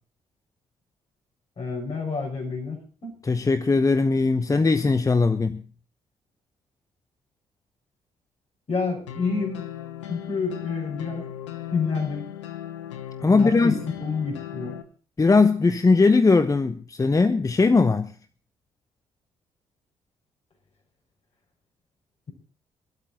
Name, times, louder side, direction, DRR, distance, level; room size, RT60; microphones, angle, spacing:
voice 1, 1.6-3.2 8.7-9.7 10.0-11.2 11.7-12.2 13.3-14.8, left 4 dB, 45° left, 6.2 m, -29 dB
voice 2, 3.2-5.6 13.2-13.8 15.2-18.1, left 3 dB, 20° left, 0.9 m, -19 dB
sound 1, 9.1-14.8, left 12 dB, 80° left, 0.9 m, -37 dB
25.0 x 12.5 x 2.9 m
figure-of-eight pair, 40°, 15 cm